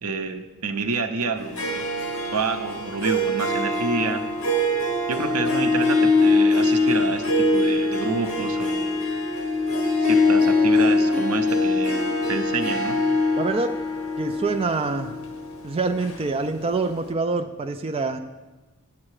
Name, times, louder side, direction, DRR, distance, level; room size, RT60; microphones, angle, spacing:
voice 1, 0.0-1.8 2.3-4.2 5.1-9.0 10.0-13.0, right 4 dB, 90° right, 7 dB, 0.7 m, -28 dB
Harp, 1.4-16.7, left 2 dB, 65° left, 1.3 m, -23 dB
voice 2, 13.4-13.7 14.2-15.1 15.6-18.2, right 3 dB, 25° right, 6 dB, 0.3 m, -25 dB
8.5 x 7.5 x 4.8 m, 1.2 s
head